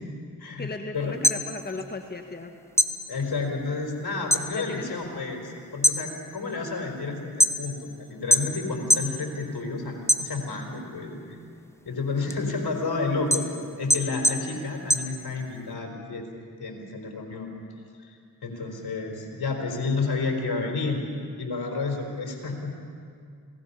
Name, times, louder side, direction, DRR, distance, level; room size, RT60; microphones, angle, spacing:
voice 1, 0.6-2.5 4.5-5.3, left 2 dB, 25° left, 5 dB, 1.5 m, -36 dB
sound 1, 1.0-2.4 2.7-4.5 4.9-5.3 5.7-7.9 8.3-9.2 9.5-10.7 11.2-15.7, equal, 5° left, 1.4 m, -24 dB
voice 2, 3.1-11.4 11.9-13.4 13.8-16.3 16.6-17.5 18.1-18.2 18.4-21.0 21.4-22.7, left 3 dB, 65° left, 2 dB, 4.4 m, -30 dB
27.5 x 18.5 x 5.7 m, 2.3 s
supercardioid pair, 40°, 40 cm